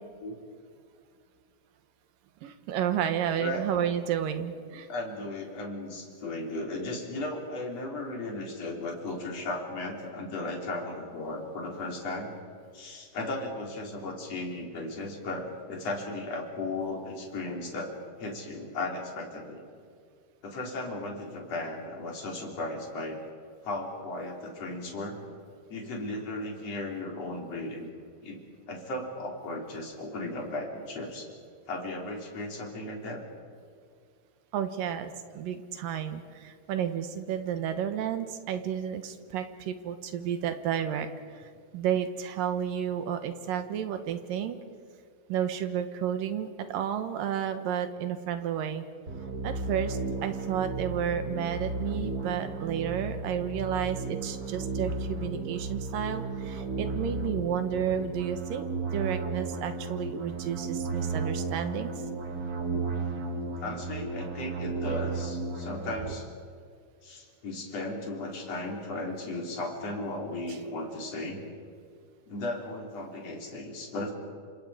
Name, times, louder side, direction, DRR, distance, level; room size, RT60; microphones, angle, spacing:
voice 1, 2.4-4.9 34.5-41.1 41.7-44.6 45.3-48.8 49.4-58.7 58.9-61.9, right 9 dB, 70° right, 9 dB, 2.7 m, -31 dB
voice 2, 4.9-12.3 12.7-19.6 20.4-23.2 23.6-25.2 25.7-27.9 28.2-28.4 28.7-31.3 31.7-33.2 63.6-66.3 67.0-71.4 72.3-74.1, left 2 dB, 45° left, 0 dB, 4.4 m, -36 dB
sound 1, 49.1-66.1, right 3 dB, 40° right, 1.3 m, -34 dB
28.5 x 26.5 x 5.0 m, 2.2 s
omnidirectional pair, 4.4 m